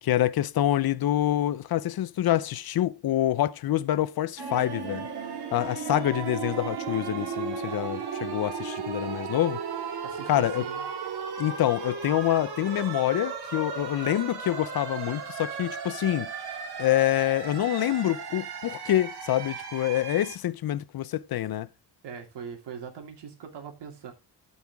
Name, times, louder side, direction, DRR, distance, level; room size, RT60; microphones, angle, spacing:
voice 1, 0.0-5.1 5.5-9.6 10.3-10.6 11.4-16.3 16.8-21.7, left 13 dB, 60° left, 0.6 m, -26 dB
sound 1, 4.4-20.4, right 6 dB, 65° right, 2.3 m, -35 dB
voice 2, 10.0-10.8 22.0-24.1, right 7 dB, 90° right, 2.7 m, -41 dB
14.0 x 5.6 x 3.5 m
wide cardioid pair, 170°, 41 cm